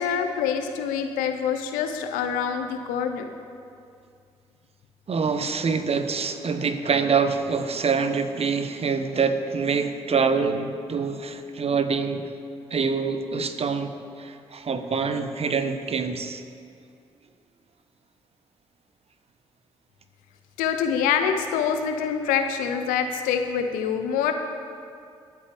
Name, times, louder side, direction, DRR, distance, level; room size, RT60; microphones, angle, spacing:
voice 1, 0.0-3.3 20.6-24.3, left 7 dB, 75° left, 6 dB, 0.9 m, -25 dB
voice 2, 5.1-12.2 12.7-13.9 14.2-16.4, right 5 dB, 45° right, 9 dB, 1.1 m, -25 dB
23.0 x 8.3 x 3.6 m, 2.4 s
hypercardioid pair, 40°, 14 cm